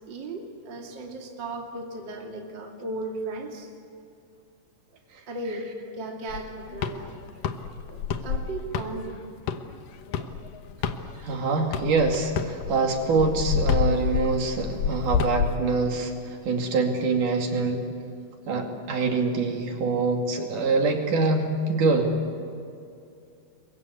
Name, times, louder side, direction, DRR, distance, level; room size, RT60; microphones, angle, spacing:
voice 1, 0.1-3.7 5.3-7.2 7.8-9.2 10.1-10.3 11.1-11.2, right 2 dB, 35° right, 1 dB, 2.9 m, -36 dB
sound 1, 6.3-11.4 11.7-15.6, left 7 dB, 85° left, 2.9 m, -28 dB
voice 2, 11.2-17.8 18.5-22.2, right 3 dB, 70° right, 2 dB, 4.1 m, -25 dB
28.5 x 23.0 x 8.3 m, 2.5 s
omnidirectional pair, 3.8 m